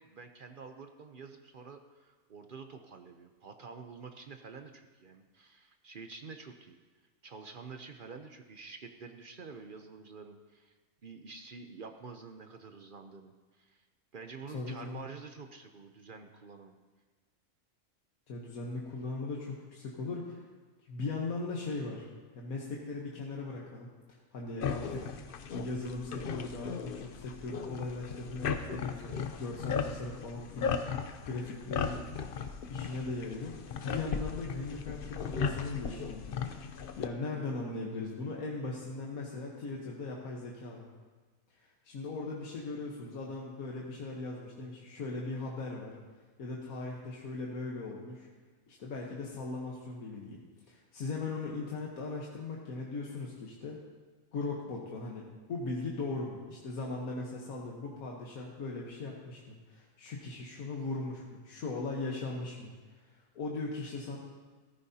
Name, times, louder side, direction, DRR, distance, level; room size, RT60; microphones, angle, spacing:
voice 1, 0.0-6.8 7.2-10.7 11.0-13.9 14.1-16.8, right 4 dB, 50° right, 6 dB, 0.6 m, -48 dB
voice 2, 14.5-15.0 18.3-20.4 20.9-22.1 22.3-32.0 32.7-40.9 41.6-46.0 46.4-48.3 48.7-50.4 50.7-53.8 54.3-64.2, left 3 dB, 80° left, -2 dB, 1.6 m, -39 dB
sound 1, 24.6-37.1, left 6 dB, 55° left, 0.7 m, -37 dB
15.0 x 13.5 x 2.8 m, 1.4 s
omnidirectional pair, 1.5 m